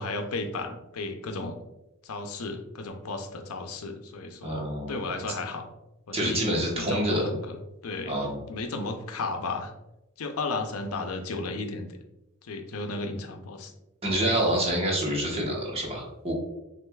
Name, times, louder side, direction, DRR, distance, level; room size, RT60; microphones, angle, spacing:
voice 1, 0.0-1.6 2.0-5.7 6.1-6.5 6.7-7.6 7.8-9.7 10.2-11.9 12.4-13.7, left 3 dB, 85° left, 5 dB, 0.5 m, -34 dB
voice 2, 4.4-5.0 6.1-7.2 8.1-8.4 14.0-16.4, right 1 dB, 30° right, -2 dB, 1.1 m, -27 dB
6.3 x 2.5 x 2.3 m, 0.92 s
head